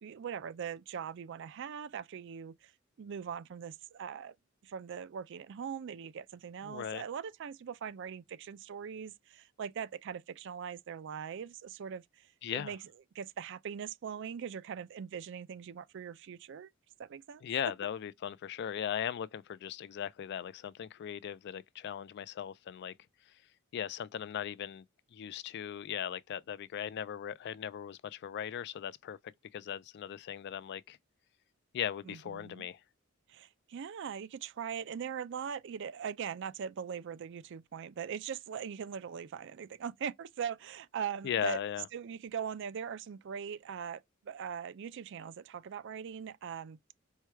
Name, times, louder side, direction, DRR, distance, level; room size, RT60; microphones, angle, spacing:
voice 1, 0.0-2.7 3.0-4.3 4.6-12.8 13.1-16.7 17.0-17.4 32.1-32.7 33.3-41.6 41.9-46.8, right 7 dB, 60° right, 0.4 m, -41 dB
voice 2, 6.6-7.0 12.4-12.7 17.4-22.9 23.7-24.8 25.1-29.2 29.5-31.0 31.7-32.8 41.2-41.9, left 9 dB, 55° left, 0.3 m, -38 dB
4.5 x 2.2 x 4.5 m
head